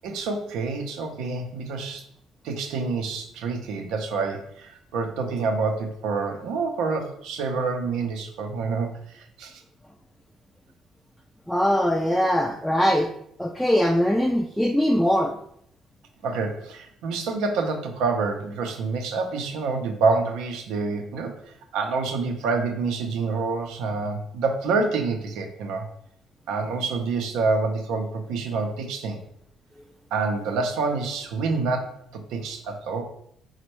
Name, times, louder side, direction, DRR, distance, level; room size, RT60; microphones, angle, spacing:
voice 1, 0.0-2.0 2.4-9.6 16.2-25.8 26.5-29.2 30.1-33.0, right 4 dB, 85° right, 4 dB, 0.5 m, -27 dB
voice 2, 11.5-13.1 13.4-15.3, equal, 5° left, 0 dB, 0.3 m, -21 dB
4.2 x 2.1 x 3.0 m, 0.70 s
cardioid pair, 105°, 0 cm